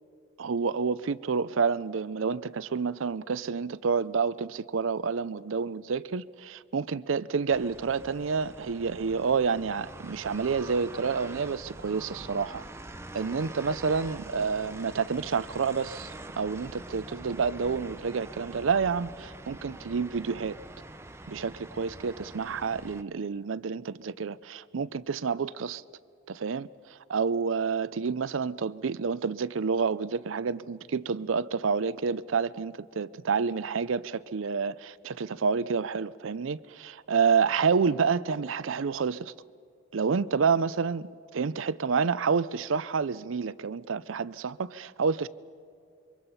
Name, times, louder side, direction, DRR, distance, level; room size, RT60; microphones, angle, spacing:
voice 1, 0.4-12.6 13.1-16.1 16.4-20.6 21.3-25.8 26.3-26.7 27.1-39.3 39.9-45.3, right 5 dB, 85° right, 0.5 m, -29 dB
sound 1, 7.5-23.0, right 2 dB, 15° right, 0.7 m, -44 dB
27.5 x 24.0 x 5.7 m
head